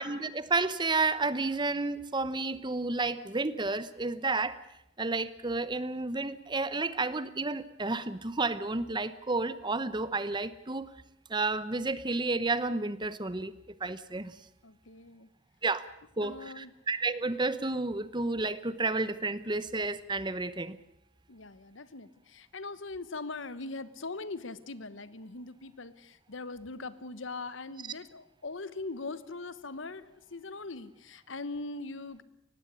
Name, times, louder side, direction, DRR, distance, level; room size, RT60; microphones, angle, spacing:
voice 1, 0.0-4.6 5.0-10.9 11.3-14.4 15.6-15.8 16.2-20.8, right 3 dB, 25° right, 15 dB, 0.9 m, -31 dB
voice 2, 14.6-15.3 16.2-16.7 21.3-32.2, left 3 dB, 80° left, 15 dB, 1.2 m, -41 dB
19.5 x 16.0 x 10.0 m, 0.83 s
head